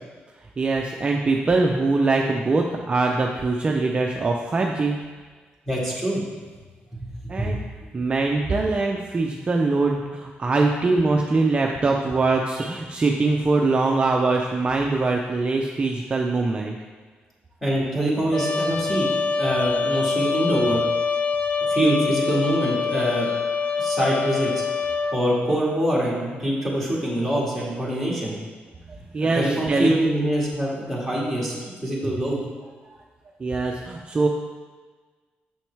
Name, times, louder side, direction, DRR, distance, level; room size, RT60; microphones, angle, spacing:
voice 1, 0.6-5.0 7.3-7.6 7.9-16.8 29.1-29.9 32.9-33.0 33.4-34.3, right 3 dB, 30° right, 1 dB, 0.5 m, -22 dB
voice 2, 5.7-6.2 6.9-7.5 17.6-19.1 19.4-20.8 21.6-23.3 23.8-24.6 25.1-28.3 29.3-31.5 31.8-32.4, right 1 dB, 5° left, -5 dB, 2.0 m, -24 dB
Trumpet, 18.3-25.2, left 5 dB, 35° left, 0.5 m, -25 dB
7.0 x 6.1 x 3.4 m, 1.4 s
cardioid pair, 120°, 4 cm